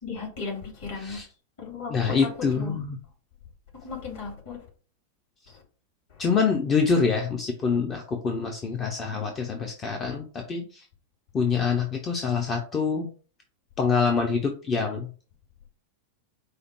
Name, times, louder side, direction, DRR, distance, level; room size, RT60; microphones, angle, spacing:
voice 1, 0.0-1.2 1.6-2.2 2.5-2.8 3.8-4.6, left 4 dB, 55° left, 2.4 m, -35 dB
voice 2, 1.9-3.0 6.2-10.8 11.3-13.1 13.8-15.1, left 5 dB, 25° left, 0.6 m, -25 dB
4.9 x 2.1 x 4.5 m
figure-of-eight pair, 90°, 0 cm